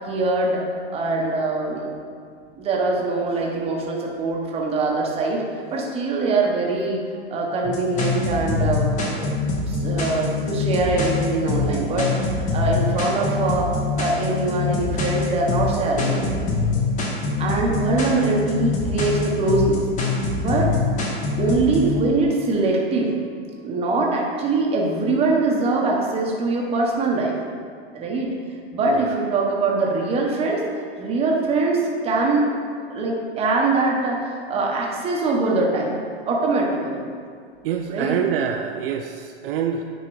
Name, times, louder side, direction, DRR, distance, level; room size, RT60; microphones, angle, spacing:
voice 1, 0.1-0.6 0.9-1.9 2.6-7.0 7.3-9.3 9.7-12.2 12.5-13.7 14.0-16.5 17.4-19.8 20.3-20.7 21.4-23.1 23.6-27.3 27.9-28.3 28.7-30.6 31.0-32.5 32.9-36.0 36.3-37.0 37.9-38.2, right 3 dB, 20° right, -1 dB, 1.0 m, -23 dB
sound 1, 7.6-22.0, left 4 dB, 25° left, 1.1 m, -24 dB
voice 2, 37.6-39.8, right 8 dB, 60° right, 4 dB, 0.5 m, -26 dB
9.6 x 3.7 x 4.7 m, 2.1 s
supercardioid pair, 150°, 32 cm